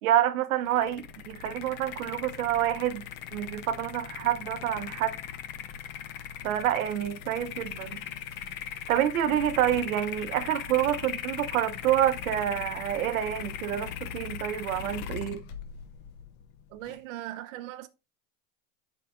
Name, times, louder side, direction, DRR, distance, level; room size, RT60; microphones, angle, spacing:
voice 1, 0.0-3.0 3.3-5.2 6.4-8.0 8.9-15.4, right 11 dB, 85° right, 1.0 m, -28 dB
sound 1, 0.7-17.0, left 9 dB, 25° left, 0.5 m, -39 dB
voice 2, 16.7-17.9, right 14 dB, 65° right, 0.7 m, -39 dB
11.5 x 4.9 x 2.5 m
supercardioid pair, 160°, 41 cm